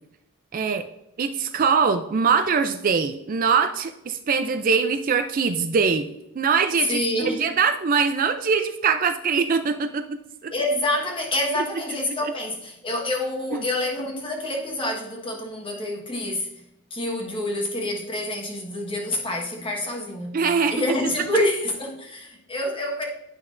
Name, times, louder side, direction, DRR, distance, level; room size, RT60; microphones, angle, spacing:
voice 1, 0.5-0.9 1.2-6.1 6.4-10.2 10.4-10.5 13.5-13.6 20.3-20.8, right 5 dB, 40° right, 8 dB, 0.4 m, -22 dB
voice 2, 6.8-7.5 10.5-16.5 16.9-23.0, left 1 dB, 25° left, 0 dB, 1.3 m, -27 dB
9.7 x 5.8 x 2.5 m, 0.87 s
head